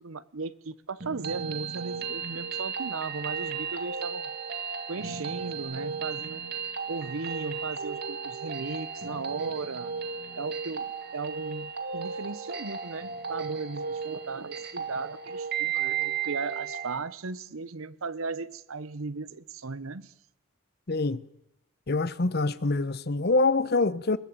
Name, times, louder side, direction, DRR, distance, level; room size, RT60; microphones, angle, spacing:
voice 1, 0.0-4.3 4.9-6.4 6.9-9.9 10.4-20.1, right 4 dB, 75° right, 0.8 m, -36 dB
sound 1, 1.0-17.0, right 6 dB, 50° right, 2.0 m, -34 dB
voice 2, 20.9-21.2 21.9-24.2, left 3 dB, 50° left, 0.8 m, -25 dB
21.5 x 16.5 x 8.8 m
head